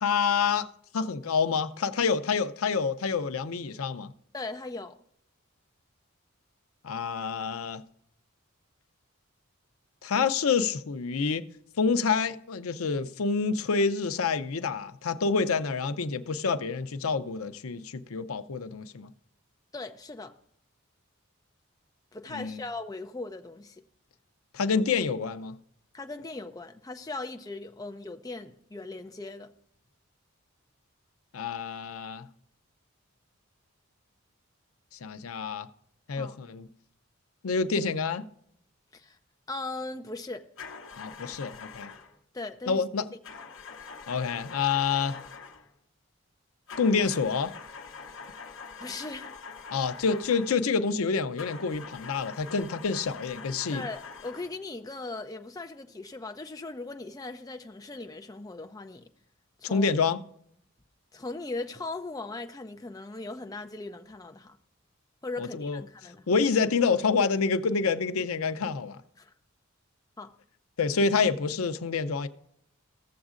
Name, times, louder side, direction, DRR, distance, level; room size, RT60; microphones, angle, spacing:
voice 1, 0.0-0.7 0.9-4.1 6.8-7.8 10.0-11.5 11.8-19.1 22.3-22.6 24.5-25.6 31.3-32.3 35.0-35.7 36.1-36.7 37.4-38.3 41.0-41.9 42.7-43.1 44.1-45.2 46.8-47.5 49.7-53.8 59.6-60.2 65.4-65.8 66.3-69.0 70.8-72.3, left 5 dB, 85° left, 0.6 m, -27 dB
voice 2, 4.3-5.0 19.7-20.4 22.1-23.8 25.9-29.5 36.2-36.4 38.9-39.2 39.5-40.5 42.3-42.8 48.8-49.3 53.7-59.1 59.6-59.9 61.1-64.6 65.2-66.3 69.2-69.3 70.2-70.3, left 3 dB, 15° left, 0.5 m, -39 dB
sound 1, 40.6-42.2 43.2-45.7 46.7-50.7 51.4-54.6, left 5 dB, 60° left, 0.9 m, -44 dB
15.5 x 7.2 x 2.5 m
head